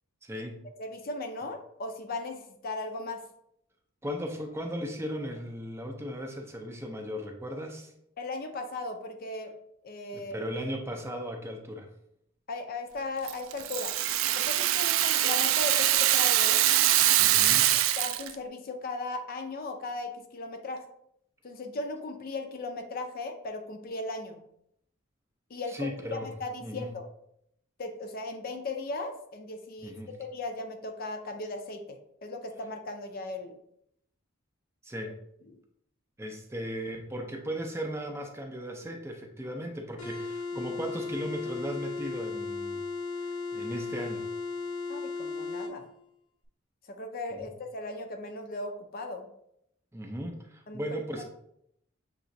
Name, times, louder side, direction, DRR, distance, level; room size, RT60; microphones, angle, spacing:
voice 1, 0.2-0.6 4.0-7.9 10.1-11.9 17.2-17.7 25.7-26.3 26.6-26.9 29.8-30.1 34.8-35.2 36.2-42.8 43.2-44.3 47.3-47.5 49.9-51.2, equal, 10° right, 3 dB, 0.5 m, -37 dB
voice 2, 0.8-3.2 8.2-9.5 9.8-10.5 12.5-13.9 14.3-16.6 17.3-20.9 21.4-24.4 25.5-27.1 27.8-33.6 35.0-35.1 44.9-45.9 46.8-49.3 50.7-50.8, left 2 dB, 45° left, 5 dB, 0.5 m, -37 dB
Rattle (instrument), 13.3-18.4, right 13 dB, 75° right, 0.3 m, -24 dB
sound 1, 40.0-45.7, left 4 dB, 85° left, 1.1 m, -35 dB
6.7 x 3.0 x 2.6 m, 0.76 s
head